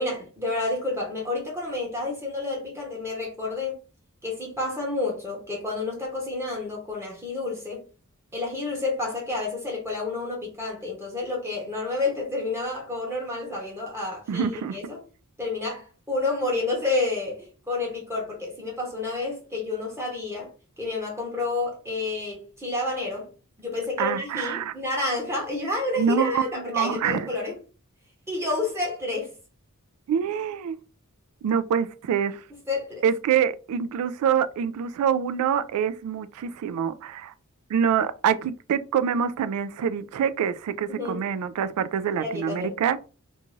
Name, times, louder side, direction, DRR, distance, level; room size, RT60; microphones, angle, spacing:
voice 1, 0.0-3.8 4.2-7.8 8.3-15.0 15.4-20.5 20.8-23.3 23.6-27.6 28.3-29.3 32.7-33.0 40.9-41.2 42.2-42.7, left 2 dB, 10° right, 0.8 m, -29 dB
voice 2, 14.3-14.8 24.0-24.7 26.0-27.3 30.1-30.8 31.4-32.4 33.0-37.3 37.7-43.0, right 8 dB, 85° right, 0.3 m, -25 dB
2.6 x 2.3 x 3.0 m
head